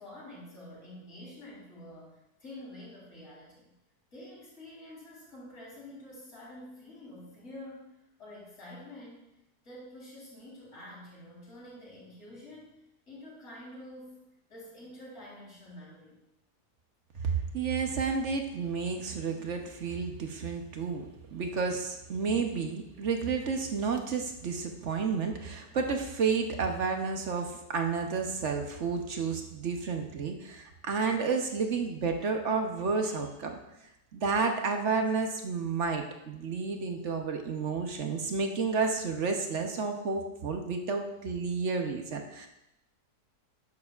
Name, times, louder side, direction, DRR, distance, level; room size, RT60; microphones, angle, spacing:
voice 1, 0.0-3.7 4.1-7.9 8.2-9.3 9.6-12.8 13.1-14.2 14.5-16.2 17.1-17.3, left 1 dB, 45° left, -6 dB, 4.2 m, -48 dB
voice 2, 17.2-33.5 34.1-42.5, right 5 dB, 50° right, 4 dB, 1.0 m, -31 dB
12.0 x 9.6 x 2.4 m, 0.86 s
omnidirectional pair, 1.7 m